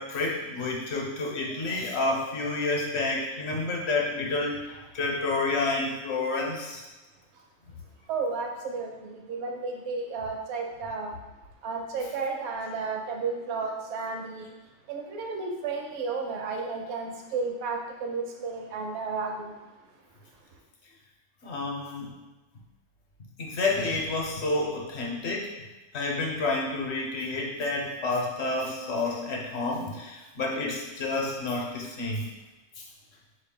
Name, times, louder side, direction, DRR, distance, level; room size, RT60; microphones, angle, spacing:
voice 1, 0.0-6.8 21.4-22.1 23.4-25.5 25.9-32.3 32.8-32.9, left 3 dB, 60° left, 0 dB, 1.0 m, -29 dB
voice 2, 8.1-11.1 11.6-14.5 14.9-19.5, right 4 dB, 70° right, 2 dB, 0.9 m, -33 dB
4.3 x 2.7 x 3.7 m, 1.1 s
omnidirectional pair, 1.3 m